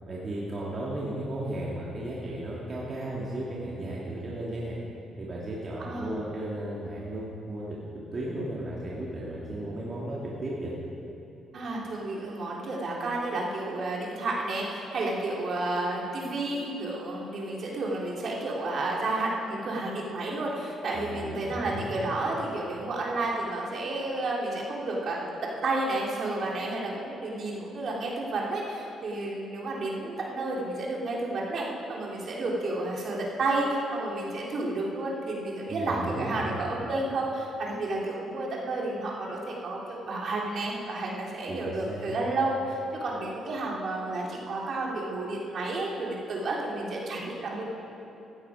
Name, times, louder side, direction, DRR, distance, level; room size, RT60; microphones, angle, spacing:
voice 1, 0.1-4.8 5.2-7.8 8.1-10.7 20.9-22.0 35.7-36.5 41.5-42.1, right 1 dB, 40° right, -6 dB, 2.4 m, -35 dB
voice 2, 5.8-6.1 11.5-47.6, right 2 dB, 55° right, -3 dB, 3.2 m, -31 dB
16.0 x 12.5 x 5.0 m, 2.9 s
cardioid pair, 90°, 0 cm